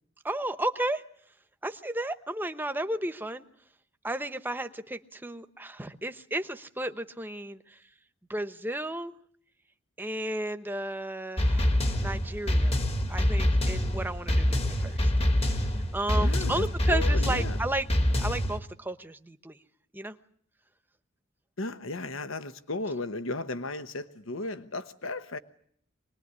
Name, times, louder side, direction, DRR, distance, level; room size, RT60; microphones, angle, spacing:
voice 1, 0.2-1.0 1.6-3.4 4.0-7.8 8.3-9.1 10.0-12.8 13.1-15.1 15.4-17.8 18.2-19.6 19.9-20.2, right 1 dB, 10° right, 9 dB, 1.0 m, -33 dB
sound 1, 11.4-18.6, left 1 dB, 30° left, 1.7 m, -26 dB
voice 2, 16.1-17.6 21.6-25.4, left 2 dB, 70° left, 11 dB, 1.1 m, -35 dB
24.5 x 20.5 x 9.7 m, 0.64 s
head